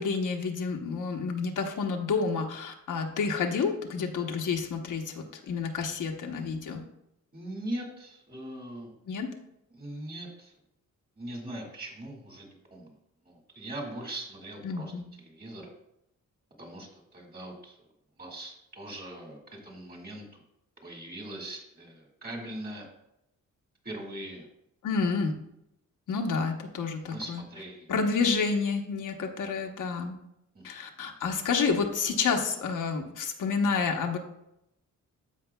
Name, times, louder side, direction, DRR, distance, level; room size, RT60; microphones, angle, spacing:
voice 1, 0.0-6.8 9.1-9.3 14.6-15.1 24.8-25.4 26.1-27.4 27.9-30.1 30.6-34.2, left 5 dB, 75° left, 3 dB, 1.0 m, -29 dB
voice 2, 7.3-8.9 9.7-10.5 11.2-13.0 13.3-14.9 15.2-15.7 16.6-17.8 18.2-20.4 20.8-22.9 23.8-24.5 27.0-27.9 30.5-30.6, right 1 dB, 30° right, 1 dB, 1.9 m, -41 dB
13.5 x 5.1 x 2.2 m, 0.83 s
wide cardioid pair, 120°, 31 cm